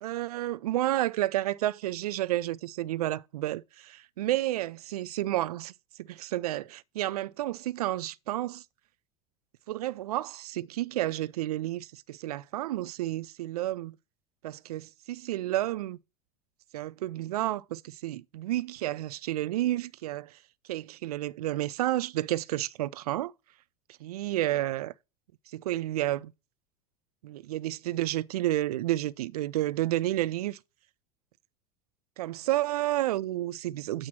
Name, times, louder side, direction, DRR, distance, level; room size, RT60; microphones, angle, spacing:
voice 1, 0.0-3.9 4.2-5.7 6.0-8.6 9.7-14.0 14.4-16.0 16.7-20.4 20.7-23.3 24.0-24.9 25.5-26.3 27.2-30.6 32.2-34.1, right 15 dB, 80° right, 0.4 m, -31 dB
8.8 x 3.0 x 5.7 m
hypercardioid pair, 85°, 19 cm